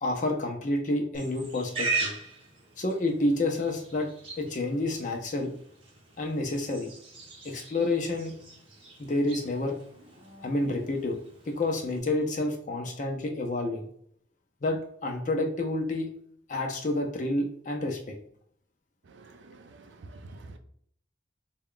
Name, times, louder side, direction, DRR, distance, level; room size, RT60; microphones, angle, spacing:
voice 1, 0.0-2.2 2.8-4.1 4.4-5.5 6.2-6.9 7.4-8.3 9.0-9.8 10.4-11.2 11.4-13.9 14.6-16.1 16.5-18.2, left 2 dB, 40° left, 2 dB, 0.5 m, -29 dB
Livestock farm animals working animals, 1.1-12.0, right 3 dB, 30° right, 0.9 m, -39 dB
voice 2, 19.1-20.6, right 2 dB, 75° right, 7 dB, 0.4 m, -48 dB
3.4 x 2.3 x 3.6 m, 0.65 s
head